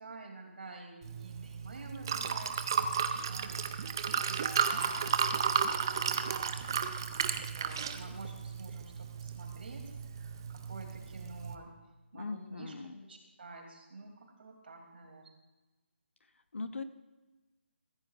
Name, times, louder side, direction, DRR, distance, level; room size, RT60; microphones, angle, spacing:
voice 1, 0.0-3.7 4.3-6.9 7.3-11.7 12.1-12.7 13.0-15.3, right 3 dB, 55° right, 2 dB, 2.8 m, -49 dB
Liquid, 1.0-11.6, right 7 dB, 20° right, 0.4 m, -34 dB
voice 2, 12.1-13.0 16.5-16.8, left 4 dB, 80° left, 10 dB, 1.0 m, -40 dB
16.0 x 15.0 x 2.5 m, 1.2 s
hypercardioid pair, 175°, 7 cm